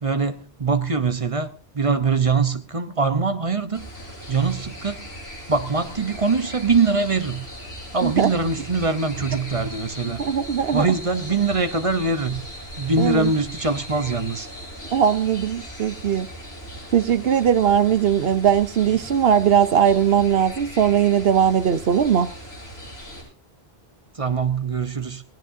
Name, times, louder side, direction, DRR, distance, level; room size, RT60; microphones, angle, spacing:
voice 1, 0.0-3.9 4.3-5.1 5.5-7.4 7.9-10.2 10.7-12.4 12.8-14.5 24.1-25.2, right 4 dB, 35° right, 0.9 m, -23 dB
sound 1, 3.7-23.2, equal, 80° left, 8.5 m, -38 dB
voice 2, 10.2-10.9 13.0-13.3 14.9-16.3 16.9-22.3, right 8 dB, 70° right, 1.0 m, -19 dB
21.0 x 16.0 x 2.7 m
omnidirectional pair, 1.1 m